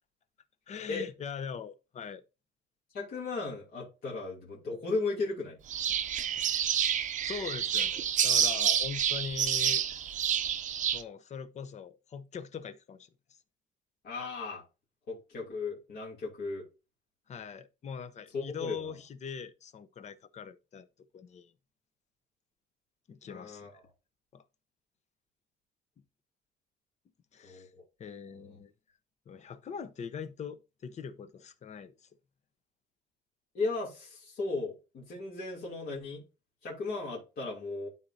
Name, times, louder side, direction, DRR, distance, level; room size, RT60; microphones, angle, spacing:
voice 1, 0.7-2.2 6.3-10.0 10.9-13.1 17.3-20.9 21.1-21.5 23.1-23.7 24.3-24.4 27.3-27.7 28.0-28.7 29.3-31.9, left 6 dB, 40° left, 0.8 m, -42 dB
voice 2, 2.9-5.6 14.0-14.6 15.1-16.6 18.3-19.0 23.2-23.7 27.4-27.7 28.3-28.6 33.5-36.2 36.6-37.9, left 3 dB, 55° left, 2.7 m, -36 dB
sound 1, 5.7-11.0, right 9 dB, 40° right, 0.7 m, -29 dB
12.5 x 4.1 x 2.7 m
cardioid pair, 140°, 19 cm